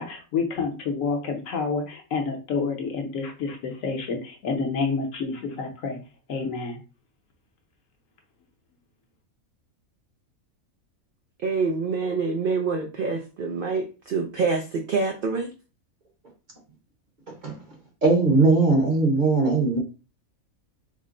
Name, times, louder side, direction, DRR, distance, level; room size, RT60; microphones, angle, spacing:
voice 1, 0.0-6.0 6.3-6.8, left 4 dB, 70° left, 1.2 m, -28 dB
voice 2, 11.4-15.5, right 4 dB, 80° right, 0.4 m, -26 dB
voice 3, 18.0-19.8, right 3 dB, 40° right, 0.9 m, -19 dB
3.6 x 2.0 x 3.7 m
omnidirectional pair, 1.5 m